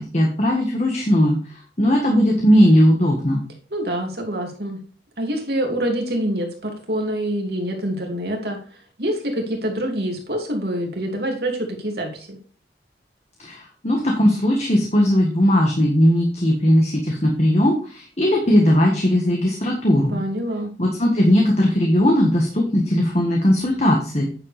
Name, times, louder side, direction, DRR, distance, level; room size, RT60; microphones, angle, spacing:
voice 1, 0.0-3.4 13.4-20.2 20.8-24.3, equal, 40° left, 0 dB, 1.7 m, -18 dB
voice 2, 3.7-4.8 5.2-12.4 20.1-20.7, right 1 dB, 65° right, 1 dB, 2.7 m, -26 dB
9.6 x 7.7 x 3.5 m, 0.39 s
head